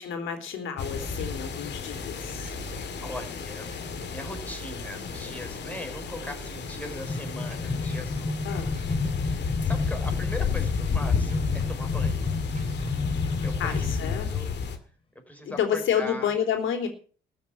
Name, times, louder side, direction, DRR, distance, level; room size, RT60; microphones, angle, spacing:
voice 1, 0.0-2.5 8.5-8.8 13.6-14.3 15.5-16.9, left 8 dB, 80° left, 5 dB, 3.7 m, -29 dB
sound 1, 0.8-14.8, left 6 dB, 60° left, 2.3 m, -31 dB
sound 2, 0.9-9.2 9.7-14.3, right 4 dB, 40° right, 3.2 m, -44 dB
voice 2, 3.0-8.6 8.9-12.2 13.4-14.5 15.3-16.3, left 1 dB, 5° left, 4 dB, 4.8 m, -40 dB
sound 3, 6.6-14.1, left 2 dB, 25° left, 4.0 m, -32 dB
14.0 x 7.2 x 9.5 m, 0.43 s
cardioid pair, 90°, 20 cm